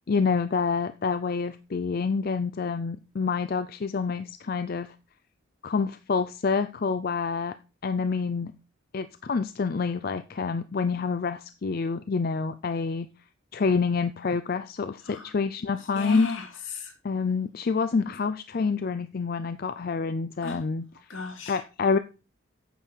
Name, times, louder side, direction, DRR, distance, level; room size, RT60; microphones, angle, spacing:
voice 1, 0.1-4.9 5.6-7.5 7.8-8.5 8.9-13.1 13.5-16.3 17.0-20.8 21.5-22.0, left 5 dB, 45° left, 0.4 m, -27 dB
voice 2, 15.9-16.9 20.4-20.6 21.1-21.6, left 3 dB, 75° left, 2.2 m, -36 dB
9.1 x 6.6 x 4.5 m
head